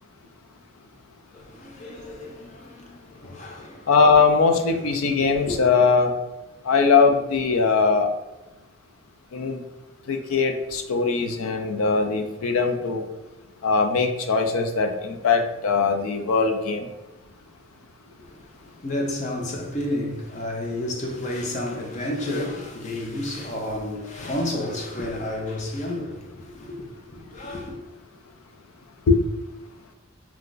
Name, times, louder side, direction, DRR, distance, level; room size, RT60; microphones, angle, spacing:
voice 1, 1.3-3.9 4.7-5.6 18.2-27.8, left 1 dB, 35° left, 0.5 m, -31 dB
voice 2, 3.9-6.1 6.7-8.1 9.3-9.6 10.1-13.0 13.6-16.9 29.1-29.2, left 4 dB, 85° left, 0.4 m, -20 dB
2.4 x 2.3 x 3.8 m
head